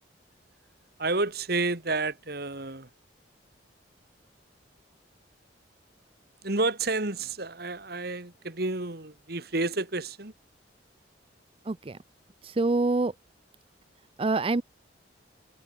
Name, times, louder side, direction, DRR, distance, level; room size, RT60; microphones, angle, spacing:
voice 1, 1.0-2.9 6.4-10.3, right 3 dB, 55° right, 2.6 m, -30 dB
voice 2, 11.7-12.0 12.4-13.1 14.2-14.6, right 3 dB, 30° right, 0.5 m, -26 dB
head